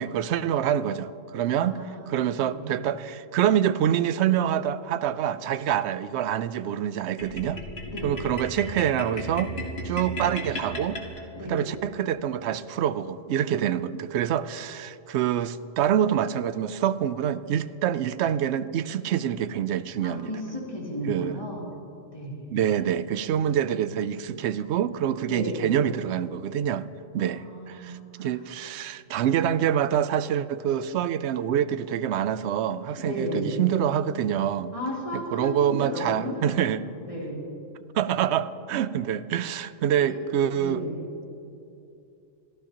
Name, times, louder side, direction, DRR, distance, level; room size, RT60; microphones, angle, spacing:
voice 1, 0.0-1.8 2.1-7.6 8.0-9.5 9.8-11.0 11.4-20.3 21.1-21.4 22.5-26.9 27.1-34.7 35.1-36.9 37.9-40.8, right 10 dB, 65° right, 14 dB, 0.8 m, -26 dB
voice 2, 1.5-2.8 7.8-8.2 11.3-11.7 20.0-21.7 22.1-22.5 25.2-25.6 27.2-28.4 33.0-33.6 34.7-37.4 39.9-40.2 40.5-41.0, equal, 25° left, -5 dB, 3.2 m, -35 dB
sound 1, 7.2-11.7, equal, 50° left, 2.1 m, -35 dB
26.0 x 14.5 x 2.9 m, 2.7 s
omnidirectional pair, 1.3 m